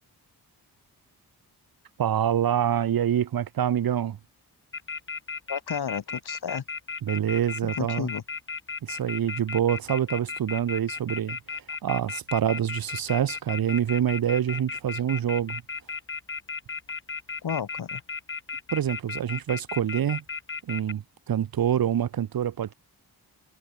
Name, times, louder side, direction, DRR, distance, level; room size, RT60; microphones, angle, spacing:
voice 1, 2.0-4.2 7.0-8.1 8.8-11.4 11.8-15.6 18.7-20.2 20.6-22.7, right 10 dB, 60° right, 0.7 m, -26 dB
sound 1, 4.7-20.9, left 5 dB, 30° left, 1.0 m, -34 dB
voice 2, 5.5-6.6 7.6-8.2 17.4-18.0, left 7 dB, 70° left, 1.9 m, -32 dB
wide cardioid pair, 90°, 40 cm